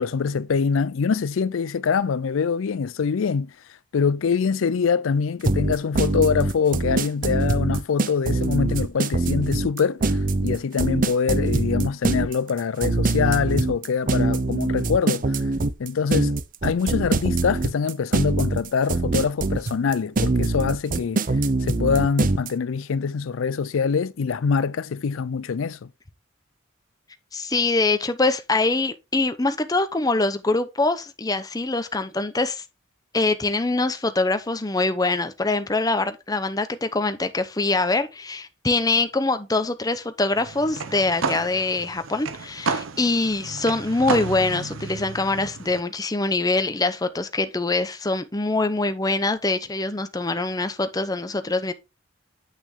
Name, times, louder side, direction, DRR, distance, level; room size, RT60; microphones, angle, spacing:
voice 1, 0.0-3.5 3.9-15.3 15.8-16.3 16.6-21.3 21.6-25.8, left 5 dB, 80° left, 0.4 m, -24 dB
sound 1, 5.4-22.5, right 2 dB, 40° right, 0.6 m, -23 dB
voice 2, 27.3-32.6 33.1-51.7, left 2 dB, 20° left, 0.7 m, -24 dB
sound 2, 40.3-45.8, right 4 dB, 85° right, 0.9 m, -32 dB
8.5 x 6.0 x 3.7 m
head